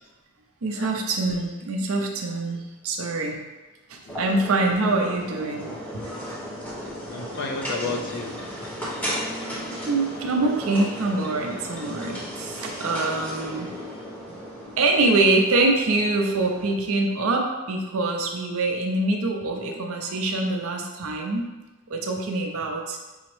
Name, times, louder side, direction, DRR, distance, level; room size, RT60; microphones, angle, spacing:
voice 1, 0.6-3.4 3.9-5.7 9.4-13.7 14.8-21.5 21.9-23.0, right 2 dB, 75° right, 2 dB, 0.5 m, -24 dB
sound 1, 4.1-16.7, equal, 5° left, 0.8 m, -35 dB
voice 2, 7.1-8.8, left 3 dB, 50° left, 1 dB, 0.5 m, -33 dB
5.5 x 2.0 x 3.0 m, 1.2 s
head